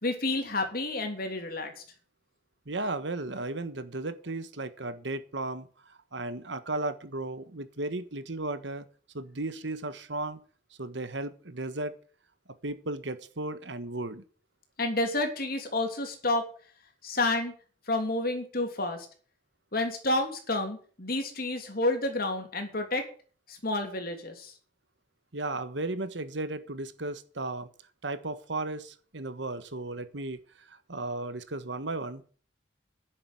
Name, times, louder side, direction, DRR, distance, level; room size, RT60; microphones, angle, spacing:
voice 1, 0.0-1.8 14.8-16.4 17.0-17.5 17.9-19.1 19.7-23.1 23.5-24.5, left 2 dB, 50° left, 3.1 m, -30 dB
voice 2, 2.7-8.9 9.1-10.4 10.8-11.9 12.6-14.2 25.3-27.7 28.0-32.3, right 2 dB, 70° right, 1.4 m, -35 dB
11.0 x 7.8 x 8.5 m
head